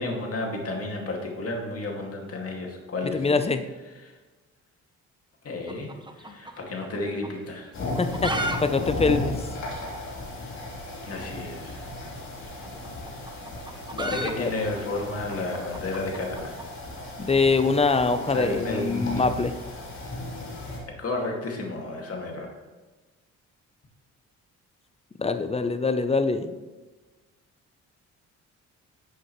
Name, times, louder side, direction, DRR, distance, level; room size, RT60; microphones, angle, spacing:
voice 1, 0.0-3.3 4.0-4.2 5.4-5.9 6.2-7.7 11.0-11.8 14.0-16.5 18.3-19.2 20.9-22.5, left 2 dB, 50° left, 1 dB, 2.3 m, -32 dB
voice 2, 3.1-3.6 8.0-9.4 13.9-14.5 17.2-19.5 25.2-26.5, left 4 dB, 20° left, 10 dB, 0.7 m, -24 dB
sound 1, 5.6-7.0 7.2-7.3 7.9-8.6 8.8-8.9 9.2-9.3 9.9-10.0 11.2-11.3 12.5-16.7, right 2 dB, 15° right, 0.9 m, -34 dB
sound 2, 7.7-20.8, left 2 dB, 70° left, 3.5 m, -35 dB
12.0 x 8.1 x 3.2 m, 1.2 s
cardioid pair, 90°, 30 cm